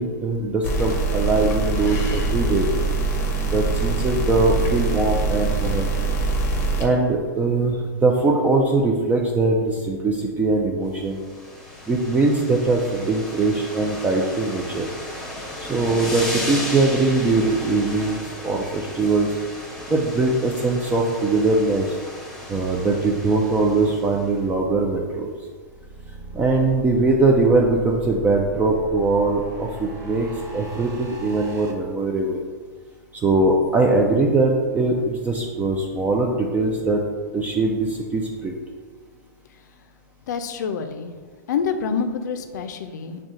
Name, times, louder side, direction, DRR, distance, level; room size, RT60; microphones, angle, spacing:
voice 1, 0.0-2.7 3.4-5.9 6.8-11.2 11.9-14.9 15.7-19.3 19.9-21.9 22.5-25.3 26.3-30.3 30.5-32.4 33.2-37.0 37.3-38.5, right 3 dB, 15° right, -1 dB, 0.4 m, -21 dB
sound 1, 0.6-6.8, right 3 dB, 25° left, 0.7 m, -23 dB
sound 2, 11.1-24.3, left 1 dB, 5° left, 1.0 m, -35 dB
sound 3, 25.6-31.7, right 3 dB, 35° right, 0.8 m, -38 dB
voice 2, 40.3-41.1 41.5-43.2, left 6 dB, 70° left, 7 dB, 0.5 m, -27 dB
6.0 x 2.3 x 3.7 m, 1.5 s
hypercardioid pair, 120°, 10 cm